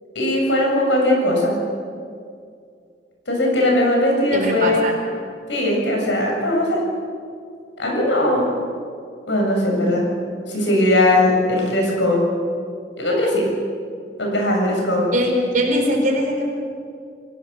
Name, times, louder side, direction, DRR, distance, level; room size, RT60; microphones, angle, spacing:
voice 1, 0.2-1.6 3.3-4.9 5.5-6.8 7.8-8.5 9.3-10.0 10.5-12.2 13.0-13.5 14.2-15.0, left 1 dB, 80° left, -1 dB, 7.1 m, -19 dB
voice 2, 4.3-4.9 15.1-16.4, equal, 45° right, 2 dB, 4.5 m, -21 dB
28.5 x 17.0 x 6.8 m, 2.3 s
head